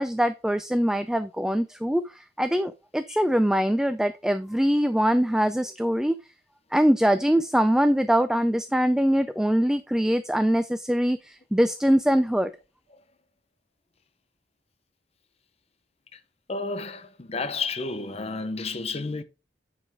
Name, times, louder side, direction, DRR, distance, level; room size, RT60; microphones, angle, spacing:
voice 1, 0.0-6.2 6.7-12.5, equal, 5° right, 0.3 m, -23 dB
voice 2, 16.5-19.2, left 3 dB, 35° left, 0.7 m, -31 dB
9.8 x 5.1 x 3.4 m
head